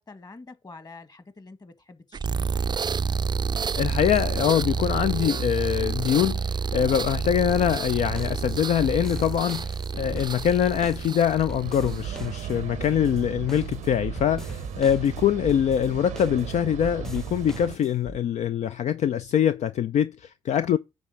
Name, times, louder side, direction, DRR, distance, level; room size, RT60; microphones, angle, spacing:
voice 1, 0.1-2.6 12.5-12.7, left 3 dB, 35° left, 1.8 m, -47 dB
sound 1, 2.1-12.1, right 5 dB, 35° right, 0.4 m, -29 dB
voice 2, 3.8-20.8, left 9 dB, 65° left, 0.5 m, -24 dB
sound 2, 7.5-18.2, equal, 5° left, 0.6 m, -41 dB
sound 3, 11.6-17.8, right 11 dB, 80° right, 0.7 m, -36 dB
9.7 x 3.4 x 7.0 m
hypercardioid pair, 45°, 13 cm